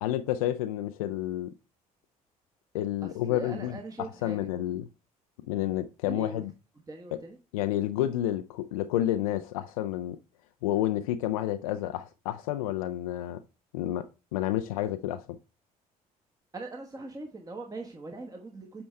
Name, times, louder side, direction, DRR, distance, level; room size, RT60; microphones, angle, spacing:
voice 1, 0.0-1.5 2.7-4.9 5.5-6.5 7.1-7.2 7.5-10.2 10.6-13.4 13.7-15.4, left 13 dB, 70° left, 0.4 m, -30 dB
voice 2, 3.0-4.5 6.0-6.4 6.9-7.4 16.5-18.8, right 2 dB, 20° right, 1.2 m, -41 dB
8.6 x 5.3 x 3.3 m
figure-of-eight pair, 50°, 19 cm